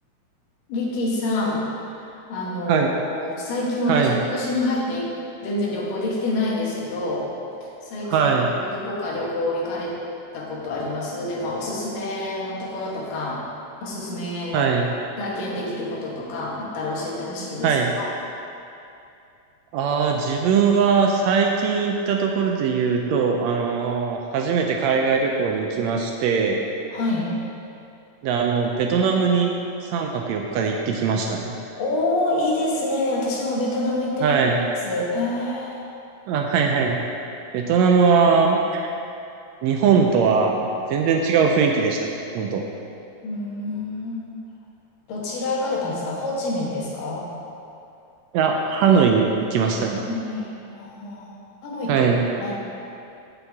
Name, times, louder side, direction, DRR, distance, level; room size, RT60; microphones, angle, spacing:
voice 1, 0.7-1.7 2.0-5.1 5.4-7.3 7.6-8.3 8.6-10.0 10.3-13.4 13.8-14.7 15.2-18.1 26.9-27.3 31.8-34.4 34.9-35.8 43.2-44.2 45.1-47.2 49.9-51.4 51.6-52.1 52.4-52.5, left 2 dB, 90° left, -4 dB, 3.2 m, -27 dB
voice 2, 8.1-8.5 14.5-14.9 17.6-17.9 19.7-26.6 28.2-29.5 29.8-31.5 34.2-34.6 36.3-37.0 37.5-38.9 39.6-42.0 42.3-42.6 48.3-50.0 51.9-52.2, right 5 dB, 85° right, 1 dB, 1.5 m, -20 dB
15.5 x 5.5 x 3.5 m, 2.6 s
omnidirectional pair, 3.7 m